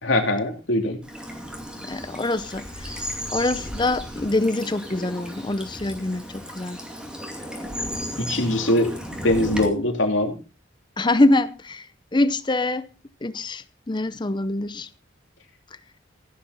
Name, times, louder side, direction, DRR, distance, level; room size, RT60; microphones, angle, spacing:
voice 1, 0.0-1.0 8.2-8.9 9.2-10.3, left 1 dB, 80° left, 3.0 m, -22 dB
Bird vocalization bird call bird song / Stream, 1.0-9.7, equal, 5° right, 2.5 m, -34 dB
voice 2, 1.8-3.0 3.3-6.8 11.0-11.9 12.1-12.9 13.2-14.9, left 2 dB, 25° left, 0.6 m, -24 dB
15.5 x 10.5 x 4.1 m
head